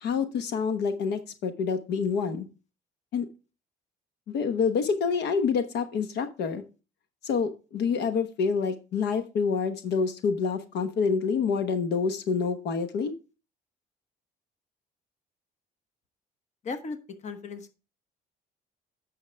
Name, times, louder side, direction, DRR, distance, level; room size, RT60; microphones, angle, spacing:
voice 1, 0.0-2.5 3.1-3.3 4.3-6.6 7.2-13.1, left 5 dB, 75° left, 9 dB, 1.0 m, -27 dB
voice 2, 16.6-17.0 17.2-17.7, left 4 dB, 45° left, 8 dB, 1.1 m, -36 dB
9.6 x 6.4 x 3.3 m, 0.32 s
cardioid pair, 110°, 17 cm